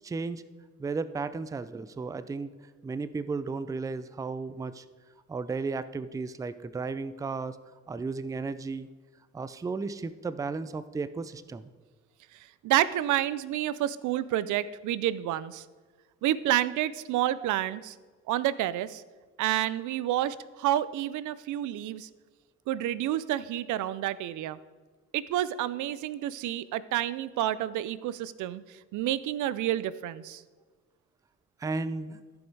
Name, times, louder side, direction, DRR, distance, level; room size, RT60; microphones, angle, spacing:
voice 1, 0.0-0.4 0.8-2.5 2.8-4.8 5.3-7.6 7.9-8.9 9.3-11.6 31.6-32.2, right 4 dB, 10° right, 14 dB, 0.3 m, -34 dB
voice 2, 12.3-15.6 16.2-18.0 18.3-19.0 19.4-22.1 22.7-24.6 25.1-30.4, right 13 dB, 80° right, 17 dB, 0.5 m, -29 dB
14.5 x 5.3 x 4.6 m, 1.4 s
cardioid pair, 90°, 30 cm